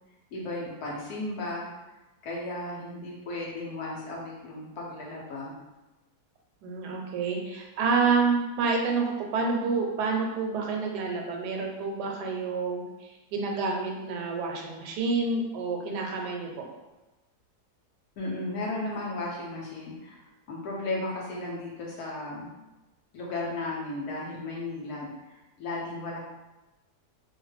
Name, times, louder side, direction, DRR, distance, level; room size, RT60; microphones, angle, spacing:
voice 1, 0.3-1.7 2.2-5.6 18.2-22.5 23.1-25.1 25.6-26.2, left 2 dB, 70° left, -3 dB, 1.2 m, -35 dB
voice 2, 6.6-16.7, right 4 dB, 75° right, 1 dB, 1.1 m, -28 dB
3.0 x 2.2 x 3.1 m, 1.0 s
omnidirectional pair, 1.8 m